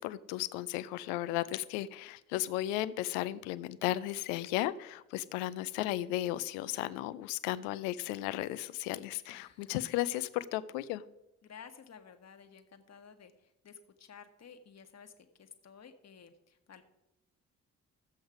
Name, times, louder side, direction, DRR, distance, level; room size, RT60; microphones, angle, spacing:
voice 1, 0.0-11.0, left 15 dB, 75° left, 16 dB, 0.7 m, -35 dB
voice 2, 9.3-9.8 11.4-15.1 15.4-16.8, left 7 dB, 40° left, 6 dB, 1.4 m, -54 dB
14.0 x 7.8 x 4.9 m, 0.96 s
figure-of-eight pair, 40°, 40 cm